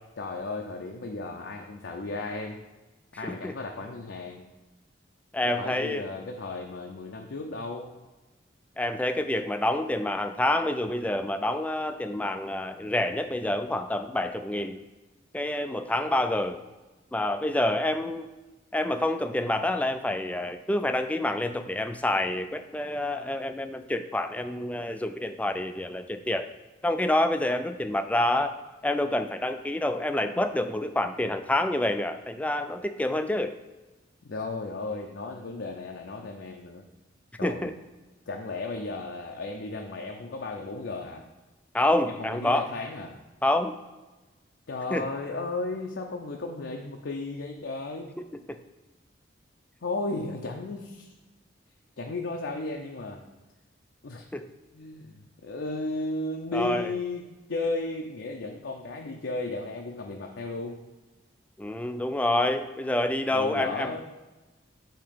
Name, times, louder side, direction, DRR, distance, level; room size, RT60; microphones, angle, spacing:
voice 1, 0.2-2.6 3.1-4.4 5.4-7.9 34.2-36.8 37.4-37.7 38.3-41.2 42.1-43.2 44.7-48.1 49.8-51.1 52.0-53.2 54.0-54.3 54.7-57.2 57.5-60.8 63.3-64.0, left 3 dB, 75° left, 1 dB, 0.6 m, -34 dB
voice 2, 5.3-6.0 8.8-14.8 15.3-16.6 17.1-18.3 18.7-26.5 26.8-28.5 28.8-33.5 37.4-37.7 41.7-42.7 43.4-43.8 44.9-45.1 48.5-48.6 54.3-54.5 56.5-56.9 61.6-63.9, left 1 dB, 10° left, 8 dB, 0.3 m, -27 dB
8.6 x 2.9 x 5.1 m, 1.2 s
head